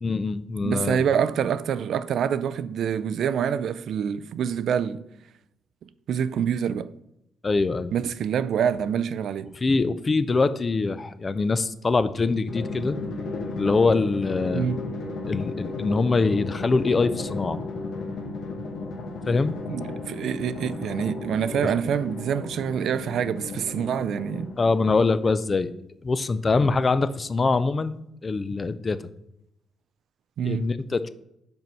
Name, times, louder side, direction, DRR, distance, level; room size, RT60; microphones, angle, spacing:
voice 1, 0.0-1.0 7.4-7.9 9.5-13.0 13.6-14.7 15.3-17.6 19.3-19.6 21.6-21.7 24.6-25.7 26.0-29.0 30.4-31.1, left 3 dB, 30° left, 0.4 m, -24 dB
voice 2, 0.6-5.0 5.8-6.9 7.9-9.5 14.5-14.8 19.7-24.5 30.4-30.7, right 8 dB, 70° right, 0.3 m, -26 dB
Drum, 12.5-24.8, left 3 dB, 65° left, 1.1 m, -34 dB
5.3 x 4.5 x 5.4 m
cardioid pair, 90°, 0 cm